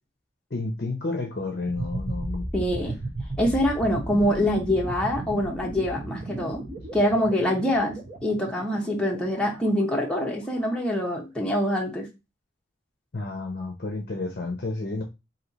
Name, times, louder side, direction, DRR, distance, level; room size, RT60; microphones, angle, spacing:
voice 1, 0.5-2.5 13.1-15.0, left 3 dB, 50° left, 3 dB, 0.6 m, -31 dB
sound 1, 1.7-10.5, right 1 dB, 40° right, 1.0 m, -35 dB
voice 2, 2.5-3.0 3.4-6.6 6.9-12.1, left 1 dB, 5° left, -2 dB, 0.8 m, -25 dB
3.1 x 2.8 x 4.0 m, 0.25 s
head